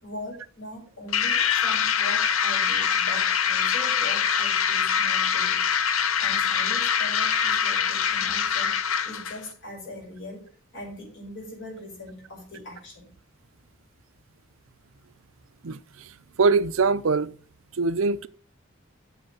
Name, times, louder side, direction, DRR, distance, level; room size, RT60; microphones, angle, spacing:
voice 1, 0.0-5.6 6.2-8.7 9.0-10.5 10.7-13.1, left 1 dB, 60° left, 5.9 m, -41 dB
sound 1, 1.1-9.4, left 7 dB, 80° left, 0.7 m, -24 dB
voice 2, 15.6-17.4 17.7-18.3, right 4 dB, 75° right, 0.6 m, -24 dB
7.9 x 6.1 x 7.1 m
head